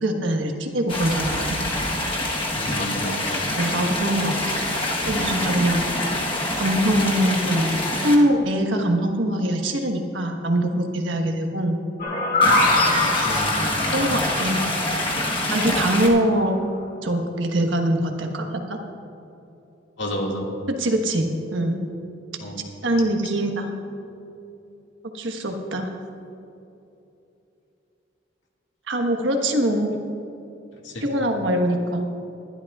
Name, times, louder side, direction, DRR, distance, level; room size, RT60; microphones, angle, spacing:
voice 1, 0.0-1.6 3.5-4.6 5.0-5.9 6.6-7.7 8.0-11.8 13.9-14.7 15.5-16.6 17.0-18.8 20.7-21.9 22.8-23.7 25.1-25.9 28.9-30.0 31.0-32.1, right 1 dB, 90° right, 3 dB, 1.3 m, -23 dB
sound 1, 0.9-8.2 12.4-16.1, left 1 dB, 25° left, 1.2 m, -26 dB
voice 2, 2.6-3.5 13.2-13.7 20.0-20.5 22.4-22.6 30.8-31.1, equal, 80° left, -1 dB, 2.0 m, -30 dB
sound 2, 12.0-15.8, left 2 dB, 45° left, 2.2 m, -23 dB
21.5 x 11.5 x 2.4 m, 2.8 s
head